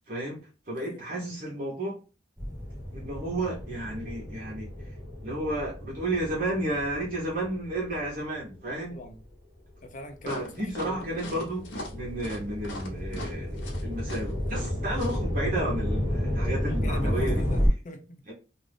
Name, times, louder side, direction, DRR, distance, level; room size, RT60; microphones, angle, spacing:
voice 1, 0.1-0.4 0.7-2.0 2.9-4.7 5.2-9.0 10.2-17.4 18.3-18.4, right 1 dB, 50° right, 0.9 m, -32 dB
voice 2, 0.8-1.3 8.9-9.2 9.8-11.3 16.5-18.3, left 1 dB, 45° left, 0.6 m, -43 dB
sound 1, 2.4-9.1 9.7-17.7, equal, 15° right, 0.7 m, -32 dB
sound 2, 10.2-15.2, left 1 dB, 80° left, 0.9 m, -40 dB
2.5 x 2.4 x 3.3 m
head